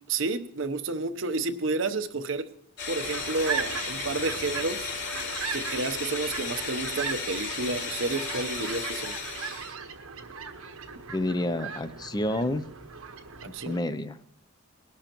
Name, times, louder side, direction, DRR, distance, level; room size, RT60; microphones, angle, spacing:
voice 1, 0.1-2.5 2.9-4.9 5.5-9.2 13.5-13.8, right 3 dB, 65° right, 10 dB, 0.8 m, -30 dB
sound 1, 2.8-9.7, left 4 dB, 55° left, 2.6 m, -34 dB
sound 2, 3.0-13.8, right 5 dB, 80° right, 1.3 m, -38 dB
voice 2, 11.1-12.6 13.7-14.2, left 1 dB, 20° left, 12 dB, 0.4 m, -29 dB
21.0 x 12.0 x 3.0 m, 0.69 s
head